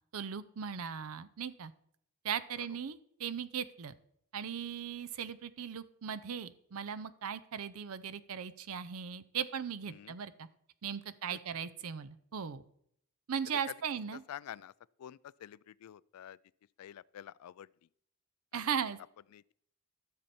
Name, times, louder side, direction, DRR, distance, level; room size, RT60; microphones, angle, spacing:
voice 1, 0.1-1.7 2.2-4.0 4.3-10.5 10.8-12.6 13.3-14.2 18.5-19.0, right 7 dB, 70° right, 0.5 m, -38 dB
voice 2, 9.9-10.2 11.3-11.4 13.5-13.7 14.1-14.7 15.0-16.4 16.8-17.7 18.5-18.9 19.3-19.5, left 10 dB, 80° left, 0.3 m, -48 dB
13.0 x 6.8 x 4.3 m
head